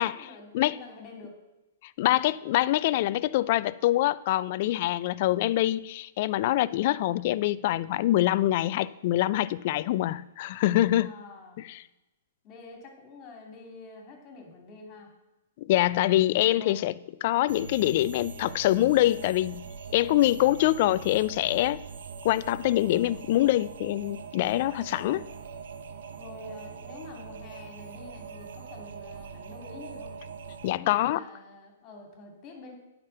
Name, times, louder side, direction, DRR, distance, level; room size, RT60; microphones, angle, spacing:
voice 1, 0.0-1.4 11.0-11.7 12.4-15.1 16.5-16.8 20.2-20.6 24.8-25.4 26.2-30.1 30.7-32.8, left 3 dB, 35° left, 2 dB, 2.7 m, -47 dB
voice 2, 2.0-11.1 11.7-11.8 15.6-16.9 17.2-19.6 19.9-21.8 22.2-25.2 30.6-31.2, left 15 dB, 50° left, 18 dB, 0.4 m, -25 dB
sound 1, 17.5-30.7, right 6 dB, 65° right, 0.9 m, -43 dB
9.2 x 5.1 x 6.9 m, 1.0 s
hypercardioid pair, 125°, 0 cm